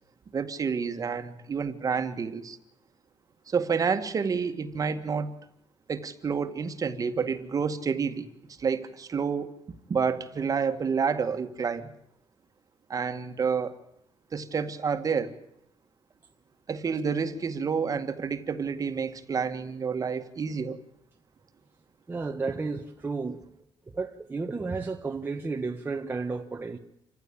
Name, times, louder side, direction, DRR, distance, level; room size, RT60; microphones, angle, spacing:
voice 1, 0.3-2.6 3.5-5.3 5.9-8.3 8.6-9.5 9.9-11.9 12.9-13.8 14.3-15.3 16.7-20.8, right 6 dB, 35° right, 1.9 m, -29 dB
voice 2, 22.1-23.4 23.9-26.8, right 4 dB, 20° right, 1.4 m, -32 dB
27.5 x 15.0 x 8.8 m
cardioid pair, 125°, 10 cm